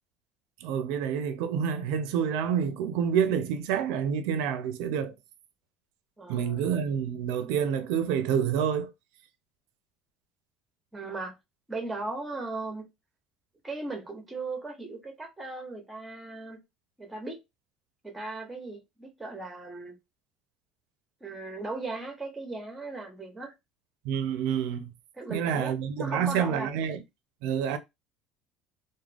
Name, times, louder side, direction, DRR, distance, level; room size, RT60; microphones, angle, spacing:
voice 1, 0.6-5.1 6.3-8.9 24.0-24.9 25.3-27.0 27.4-27.8, right 8 dB, 80° right, 0.4 m, -28 dB
voice 2, 6.2-6.6 10.9-11.3 11.7-12.8 13.6-16.6 17.0-17.4 18.0-19.9 21.2-23.5 25.1-26.9, right 3 dB, 10° right, 0.8 m, -37 dB
2.4 x 2.1 x 3.2 m
cardioid pair, 150°, 0 cm